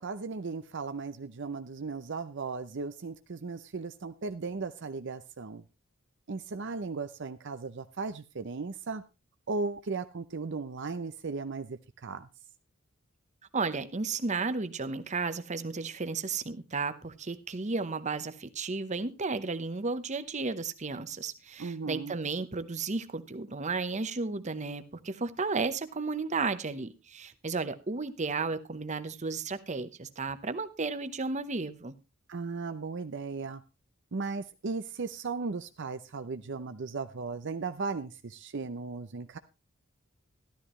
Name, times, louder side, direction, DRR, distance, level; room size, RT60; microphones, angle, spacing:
voice 1, 0.0-5.6 6.3-9.0 9.5-12.3 21.6-22.1 32.3-33.6 34.1-39.4, right 4 dB, 60° right, 10 dB, 0.6 m, -36 dB
voice 2, 13.5-31.9, right 4 dB, 35° right, 12 dB, 0.9 m, -33 dB
13.0 x 12.5 x 3.1 m, 0.28 s
head